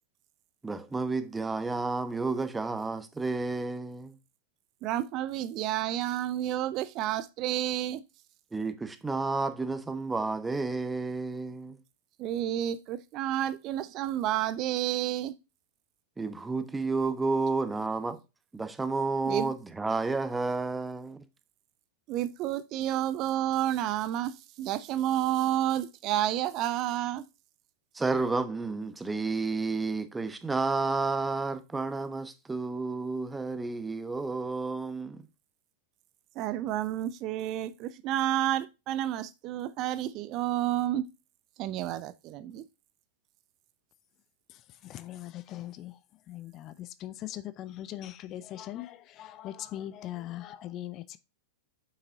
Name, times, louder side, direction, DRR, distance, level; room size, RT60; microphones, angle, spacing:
voice 1, 0.6-4.2 8.5-11.8 16.2-18.2 18.5-21.2 27.9-35.2, right 3 dB, 10° right, 1.0 m, -31 dB
voice 2, 4.8-8.0 12.2-15.3 19.3-19.5 22.1-27.2 36.4-41.0 41.6-42.6, right 12 dB, 40° right, 0.5 m, -30 dB
voice 3, 44.5-46.0 46.3-51.2, left 13 dB, 35° left, 0.5 m, -40 dB
7.9 x 5.8 x 2.7 m
figure-of-eight pair, 90°, 0 cm